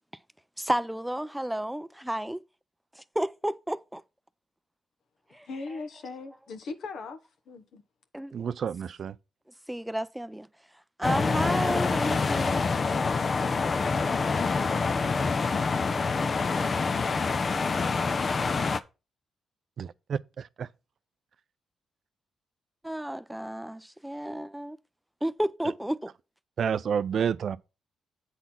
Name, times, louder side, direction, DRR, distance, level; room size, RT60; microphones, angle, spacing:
voice 1, 0.6-2.4 3.0-4.0 5.3-5.5 8.1-8.3 9.7-10.5 11.0-12.7 22.8-24.8 25.2-26.1, right 1 dB, 5° right, 0.5 m, -31 dB
voice 2, 5.3-7.2 7.5-7.8, left 3 dB, 70° left, 1.2 m, -39 dB
voice 3, 8.3-9.2 19.8-20.7 26.6-27.6, right 7 dB, 65° right, 0.4 m, -30 dB
sound 1, 11.0-18.8, left 4 dB, 45° left, 0.6 m, -26 dB
8.1 x 4.1 x 5.7 m
supercardioid pair, 55°, 0 cm